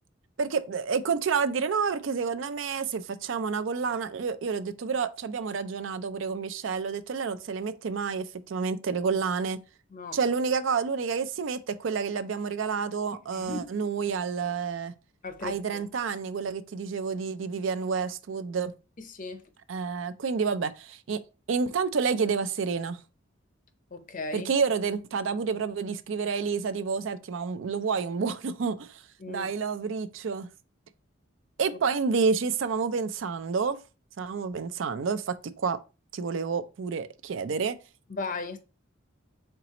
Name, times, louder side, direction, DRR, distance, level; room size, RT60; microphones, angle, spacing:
voice 1, 0.4-9.6 10.1-14.9 15.4-18.7 19.7-21.2 21.5-23.0 24.3-29.0 29.3-30.5 31.6-33.8 34.2-35.8 36.1-37.8, right 5 dB, 65° right, 0.4 m, -29 dB
voice 2, 13.3-13.7 15.2-15.9 19.0-19.4 23.9-24.5 29.2-29.5 38.1-38.6, left 3 dB, 40° left, 0.6 m, -36 dB
4.5 x 3.9 x 2.9 m
head